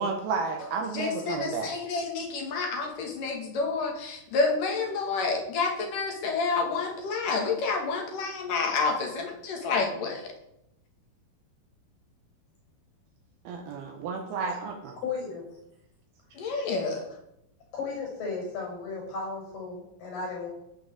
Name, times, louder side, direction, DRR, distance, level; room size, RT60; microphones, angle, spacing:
voice 1, 0.0-1.7 13.4-15.0, right 4 dB, 70° right, 2 dB, 3.1 m, -32 dB
voice 2, 0.9-10.3 16.4-17.1, left 4 dB, 55° left, 2 dB, 4.0 m, -29 dB
voice 3, 15.0-15.4 17.7-20.5, left 4 dB, 70° left, -1 dB, 8.6 m, -34 dB
17.5 x 6.2 x 8.0 m, 0.80 s
omnidirectional pair, 4.6 m